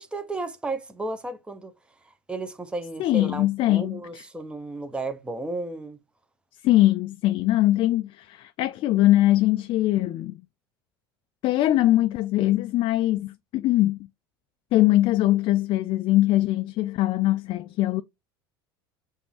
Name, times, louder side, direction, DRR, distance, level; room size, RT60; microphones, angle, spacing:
voice 1, 0.0-1.7 2.3-6.0, right 2 dB, 10° right, 0.7 m, -33 dB
voice 2, 3.0-4.2 6.6-10.4 11.4-14.0 14.7-18.0, left 15 dB, 45° left, 0.3 m, -22 dB
6.7 x 2.6 x 2.7 m
hypercardioid pair, 75°, 13 cm